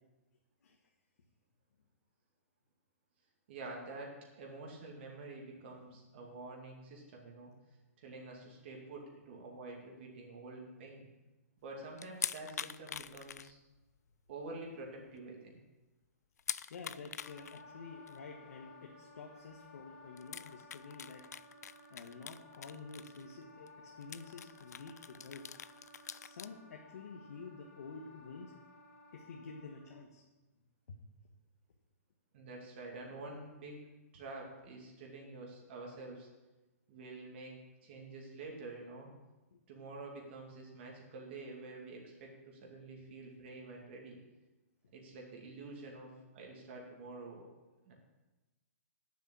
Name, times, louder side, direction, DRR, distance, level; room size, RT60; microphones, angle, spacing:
voice 1, 3.5-7.5 8.0-11.1 11.6-13.6 14.3-15.6 32.3-33.8 34.1-36.3 36.9-37.5 37.8-39.1 39.7-44.2 44.9-47.5 47.9-48.0, right 2 dB, 45° right, -1 dB, 2.3 m, -48 dB
voice 2, 5.6-5.9 16.7-21.2 21.9-25.4 26.1-28.5 29.1-30.2 30.9-31.0 39.5-39.6, left 4 dB, 70° left, 1 dB, 1.6 m, -50 dB
sound 1, 12.0-14.0 14.3-14.4 14.8-14.9 15.2-15.3 16.4-17.6 18.1-18.2 19.5-19.6 20.2-23.4 23.7-23.8 24.0-26.5, left 8 dB, 90° left, 0.5 m, -44 dB
Wind instrument woodwind instrument, 17.2-30.1, left 2 dB, 25° left, 1.9 m, -57 dB
9.7 x 7.4 x 8.5 m, 1.1 s
hypercardioid pair, 160°, 9 cm